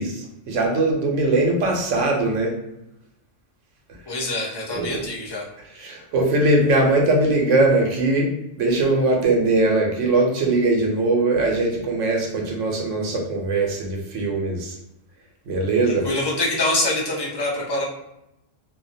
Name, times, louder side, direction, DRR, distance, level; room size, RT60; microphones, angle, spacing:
voice 1, 0.0-2.5 4.7-5.1 5.7-8.3 8.6-14.7 15.5-16.1, right 2 dB, 85° right, 1 dB, 1.0 m, -21 dB
voice 2, 4.1-5.4 15.8-17.8, left 2 dB, 35° left, -4 dB, 0.4 m, -25 dB
2.4 x 2.1 x 2.6 m, 0.85 s
omnidirectional pair, 1.2 m